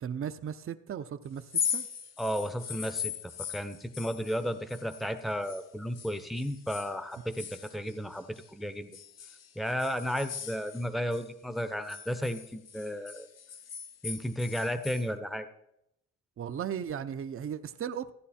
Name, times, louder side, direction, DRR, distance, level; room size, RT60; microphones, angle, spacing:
voice 1, 0.0-1.9 16.4-18.1, right 8 dB, 45° right, 10 dB, 0.8 m, -36 dB
sound 1, 1.4-5.6 5.9-8.5 8.9-11.3 11.6-15.1, left 8 dB, 60° left, 1.0 m, -39 dB
voice 2, 2.2-3.1 3.5-9.0 9.6-13.3 14.0-15.5, equal, ahead, 11 dB, 0.9 m, -33 dB
15.0 x 10.0 x 4.3 m, 0.80 s
cardioid pair, 90°, 30 cm